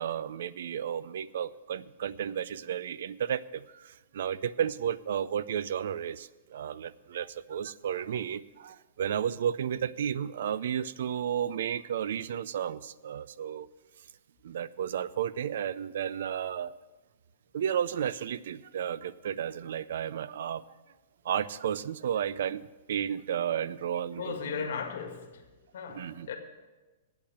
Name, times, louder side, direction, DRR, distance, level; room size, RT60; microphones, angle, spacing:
voice 1, 0.0-13.7 14.4-16.8 17.5-20.6 21.2-24.4 25.9-26.3, right 9 dB, 65° right, 0.4 m, -33 dB
voice 2, 24.2-25.4 25.7-26.4, left 6 dB, 65° left, 1.9 m, -36 dB
8.6 x 8.3 x 8.7 m
hypercardioid pair, 170°, 0 cm